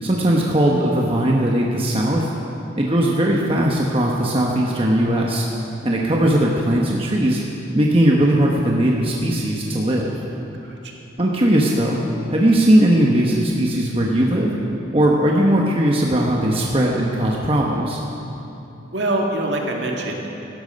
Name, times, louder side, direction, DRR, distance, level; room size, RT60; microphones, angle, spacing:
voice 1, 0.0-2.3 2.8-5.5 5.8-7.4 7.7-10.1 11.2-12.0 12.3-14.5 14.9-18.0, right 1 dB, 30° right, -2 dB, 1.1 m, -18 dB
voice 2, 10.6-10.9 18.9-20.3, right 1 dB, 65° right, 0 dB, 2.0 m, -24 dB
17.5 x 13.0 x 5.3 m, 2.9 s
head